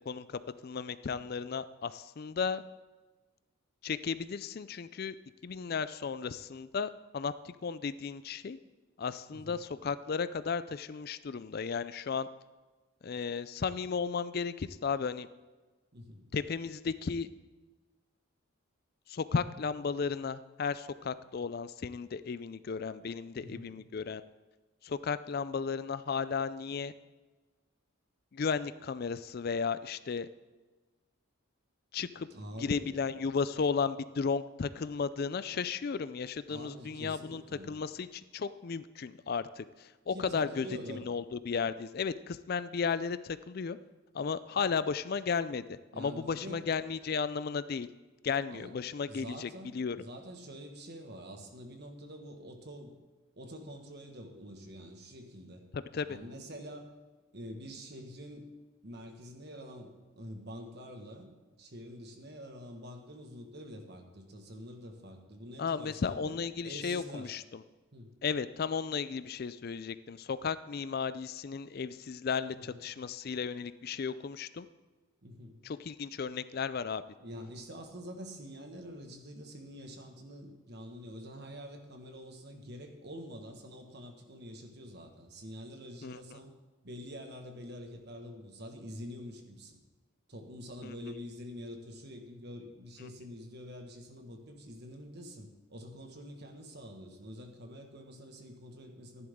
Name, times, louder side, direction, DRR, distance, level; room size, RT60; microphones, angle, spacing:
voice 1, 0.1-2.6 3.8-5.2 5.4-8.6 9.0-12.3 13.0-15.3 16.3-17.3 19.1-24.2 24.8-26.9 28.3-30.3 31.9-32.3 32.6-37.4 37.7-43.8 44.1-47.9 48.2-50.0 55.7-56.1 65.6-67.4 68.2-74.7 75.6-77.0 86.0-86.4 90.8-90.9, left 5 dB, 45° left, 14 dB, 0.4 m, -34 dB
voice 2, 15.9-16.3 23.3-23.7 32.3-32.9 36.5-37.7 40.1-41.1 45.9-46.6 48.5-48.7 49.1-52.9 53.4-55.6 56.0-56.9 57.3-58.5 58.8-59.9 60.2-61.3 61.6-66.4 66.6-67.3 67.9-68.1 72.5-72.8 75.2-75.6 77.2-86.5 86.8-89.8 90.3-99.3, equal, 50° right, 4 dB, 1.6 m, -46 dB
15.0 x 11.0 x 3.7 m, 1.2 s
head